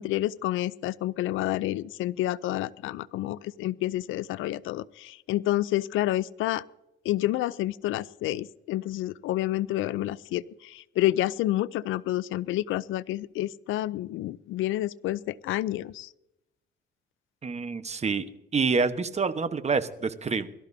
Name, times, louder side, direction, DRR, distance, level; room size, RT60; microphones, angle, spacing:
voice 1, 0.0-6.6 7.0-16.1, left 15 dB, 85° left, 19 dB, 0.5 m, -29 dB
voice 2, 17.4-18.3 18.5-20.5, right 4 dB, 35° right, 11 dB, 1.1 m, -27 dB
23.0 x 13.0 x 2.7 m, 0.88 s
cardioid pair, 90°, 20 cm